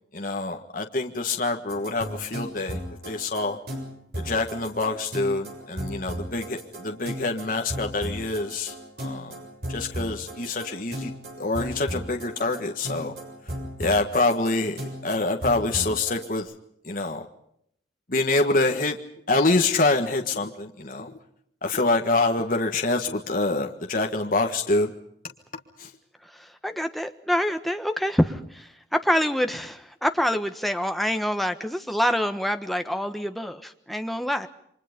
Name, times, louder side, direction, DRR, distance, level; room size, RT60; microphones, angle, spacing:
voice 1, 0.1-3.6 4.2-9.3 9.7-11.1 11.4-13.1 13.8-14.8 15.0-16.5 16.8-17.3 18.1-19.0 19.3-21.1 21.6-24.9 25.8-25.9, left 2 dB, 45° left, 3 dB, 1.7 m, -26 dB
sound 1, 1.7-16.3, equal, 55° right, 7.1 m, -36 dB
voice 2, 26.6-34.5, equal, ahead, 6 dB, 1.3 m, -26 dB
29.5 x 24.5 x 5.3 m, 0.72 s
head